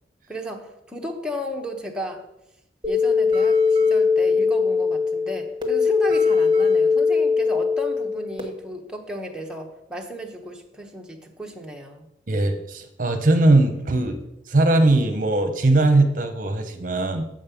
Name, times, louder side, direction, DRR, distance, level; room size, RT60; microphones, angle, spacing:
voice 1, 0.3-2.3 2.9-12.5, equal, 5° right, 0 dB, 0.9 m, -34 dB
sound 1, 2.8-8.4, left 5 dB, 25° right, 1.3 m, -20 dB
voice 2, 12.3-14.2 14.5-17.2, right 2 dB, 50° right, 7 dB, 0.8 m, -20 dB
7.4 x 5.3 x 6.9 m, 0.85 s
head